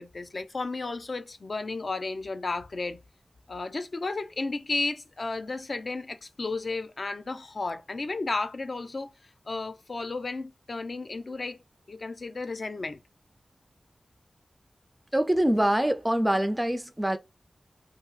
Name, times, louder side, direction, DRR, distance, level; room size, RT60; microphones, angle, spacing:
voice 1, 0.0-3.0 3.5-9.1 9.5-11.6 11.9-13.0, left 3 dB, 55° left, 0.4 m, -33 dB
voice 2, 15.1-17.2, right 1 dB, 10° right, 0.4 m, -24 dB
2.9 x 2.7 x 2.3 m
wide cardioid pair, 95°, 0 cm